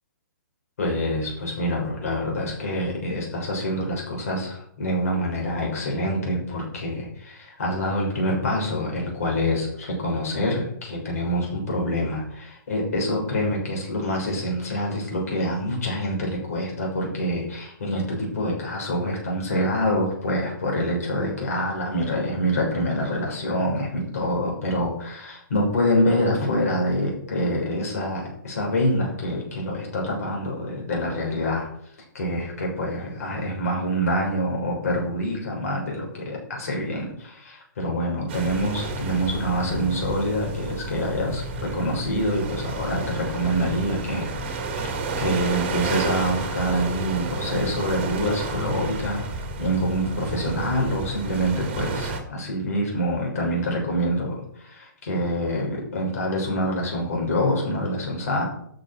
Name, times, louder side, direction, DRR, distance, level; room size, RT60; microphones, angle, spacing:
voice 1, 0.8-31.7 32.1-58.4, equal, 50° left, -1 dB, 6.6 m, -26 dB
sound 1, 38.3-52.2, right 3 dB, 30° right, 2.2 m, -31 dB
12.5 x 7.6 x 6.4 m, 0.68 s
hypercardioid pair, 175°, 11 cm